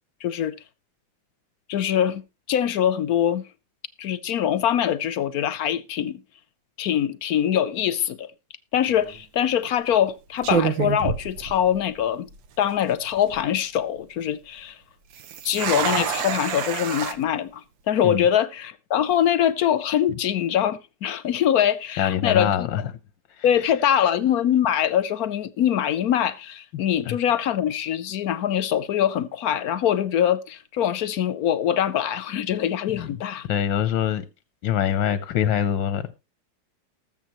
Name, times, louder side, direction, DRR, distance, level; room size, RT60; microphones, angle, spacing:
voice 1, 0.2-0.5 1.7-2.2 2.5-3.4 4.0-6.2 6.8-8.3 8.7-12.3 12.6-14.8 15.4-22.7 23.4-33.5, left 10 dB, 65° left, 1.0 m, -23 dB
sound 1, 8.9-9.2 9.9-10.1 10.4-12.0 12.3-12.4 13.0-13.4 15.1-17.1, right 8 dB, 90° right, 1.7 m, -27 dB
voice 2, 22.0-22.8 27.1-27.2 33.0-33.1 33.4-34.2 34.6-36.1, left 9 dB, 90° left, 1.5 m, -24 dB
19.5 x 7.2 x 3.0 m
omnidirectional pair, 2.0 m